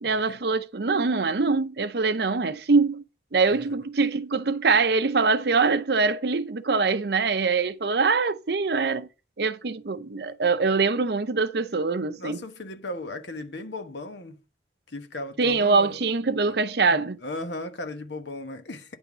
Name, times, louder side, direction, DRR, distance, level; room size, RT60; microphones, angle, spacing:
voice 1, 0.0-3.0 3.3-9.1 9.4-12.4 15.4-17.2, right 4 dB, 60° right, 0.6 m, -23 dB
voice 2, 12.2-14.4 14.9-16.0 16.5-16.6 17.2-19.0, left 2 dB, 70° left, 1.3 m, -36 dB
10.0 x 3.5 x 6.1 m
head